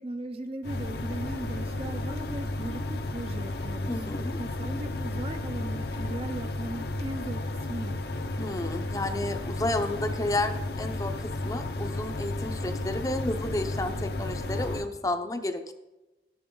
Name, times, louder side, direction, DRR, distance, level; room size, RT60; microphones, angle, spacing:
voice 1, 0.0-8.0, right 2 dB, 35° right, 8 dB, 0.6 m, -38 dB
sound 1, 0.6-14.9, left 2 dB, 60° left, 0.8 m, -33 dB
voice 2, 3.9-4.4 8.4-15.7, left 2 dB, 20° left, 7 dB, 0.7 m, -31 dB
13.5 x 11.0 x 3.8 m, 1.1 s
head